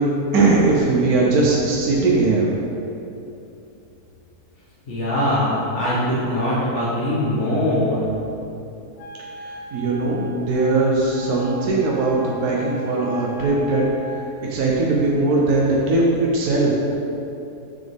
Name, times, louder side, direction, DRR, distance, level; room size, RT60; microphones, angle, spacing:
voice 1, 0.0-2.5 9.4-14.2 14.5-16.8, right 2 dB, 75° right, -3 dB, 1.4 m, -20 dB
voice 2, 4.9-8.1, left 1 dB, 50° left, -9 dB, 1.5 m, -22 dB
Wind instrument woodwind instrument, 9.0-14.4, right 1 dB, 85° left, 1.6 m, -38 dB
7.4 x 7.2 x 3.5 m, 2.8 s
omnidirectional pair, 1.6 m